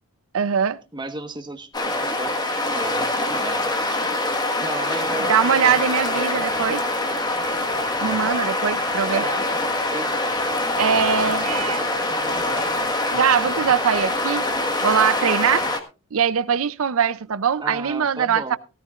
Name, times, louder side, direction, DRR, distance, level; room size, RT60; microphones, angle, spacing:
voice 1, 0.3-0.8 5.3-6.8 8.0-9.2 10.8-11.8 13.1-14.4 14.8-15.7 16.1-18.6, right 7 dB, 75° right, 0.5 m, -21 dB
voice 2, 0.9-3.7 4.5-6.8 7.6-7.7 9.1-10.2 11.2-12.7 17.6-18.6, right 2 dB, 20° right, 1.3 m, -35 dB
sound 1, 1.7-15.8, left 2 dB, 20° left, 1.5 m, -24 dB
17.5 x 13.5 x 2.4 m
head